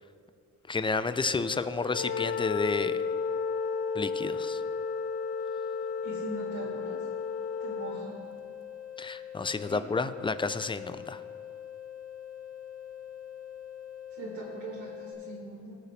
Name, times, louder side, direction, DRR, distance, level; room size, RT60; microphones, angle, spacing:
voice 1, 0.7-3.0 3.9-4.6 9.0-11.2, left 4 dB, 15° left, 13 dB, 0.4 m, -31 dB
sound 1, 0.8-15.1, left 10 dB, 50° right, 2.4 m, -44 dB
Wind instrument woodwind instrument, 1.8-8.1, left 5 dB, 80° left, 0.4 m, -33 dB
voice 2, 6.0-7.0 7.6-8.2 9.7-9.8 14.1-15.8, right 3 dB, 75° right, -7 dB, 1.8 m, -41 dB
18.0 x 6.7 x 3.3 m, 2.3 s
cardioid pair, 90°, 30 cm